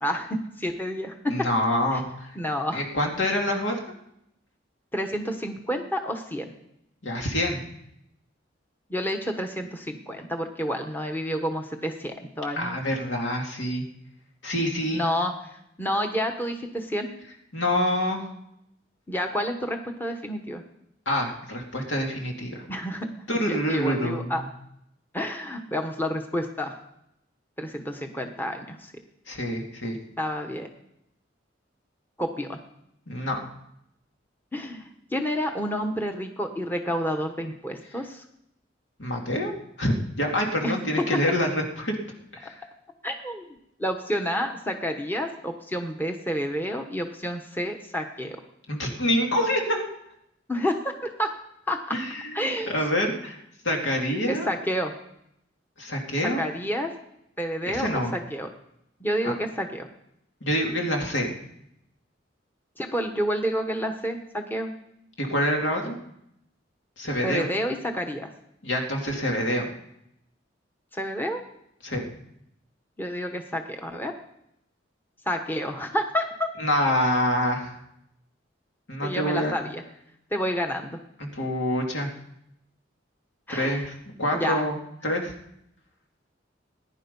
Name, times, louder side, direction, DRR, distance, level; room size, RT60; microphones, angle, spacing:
voice 1, 0.0-1.3 1.9-2.0 2.4-2.8 4.9-6.5 8.9-12.8 14.9-17.1 19.1-20.6 22.7-23.1 23.5-24.4 25.1-26.8 27.6-28.9 30.2-30.7 32.2-32.6 34.5-38.2 40.6-40.7 43.0-48.4 50.5-50.9 51.2-51.3 51.7-51.9 52.3-52.7 54.3-54.9 56.2-56.9 57.4-58.5 59.0-59.9 62.8-64.7 67.2-68.3 70.9-71.4 73.0-74.1 75.3-76.5 79.0-79.8 80.3-81.0 83.5-83.9 84.3-84.6, equal, 10° left, 4 dB, 1.1 m, -29 dB
voice 2, 1.3-2.3 2.7-3.8 7.0-7.6 12.6-13.8 14.4-15.0 17.5-18.3 21.1-22.6 23.3-24.5 29.3-30.0 33.1-33.4 39.0-39.5 39.8-42.0 42.3-42.6 48.7-49.9 51.9-53.4 53.6-54.5 55.8-56.4 57.7-58.1 60.4-61.3 65.2-66.0 67.0-67.5 68.6-69.7 71.8-72.0 76.6-77.7 78.9-79.5 81.2-82.1 83.5-83.9 84.2-85.3, equal, 75° left, 1 dB, 2.7 m, -26 dB
19.5 x 10.5 x 5.4 m, 0.79 s
head